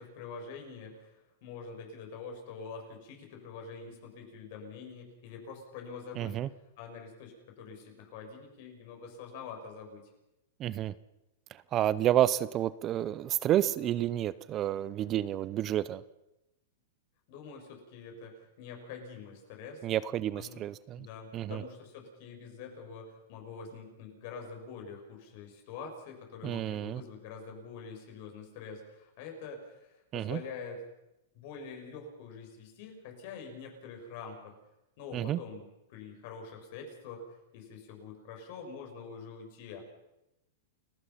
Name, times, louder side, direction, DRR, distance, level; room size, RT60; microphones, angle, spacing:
voice 1, 0.0-6.4 6.8-10.1 17.3-19.8 20.4-20.6 21.0-30.8 31.3-34.5 35.0-39.8, left 5 dB, 55° left, 3 dB, 7.0 m, -45 dB
voice 2, 6.2-6.5 10.6-10.9 11.7-16.0 19.8-21.1 21.3-21.6 26.4-27.0 30.1-30.4 35.1-35.4, right 12 dB, 30° right, 18 dB, 0.7 m, -30 dB
29.5 x 16.5 x 5.8 m, 0.91 s
hypercardioid pair, 130°, 0 cm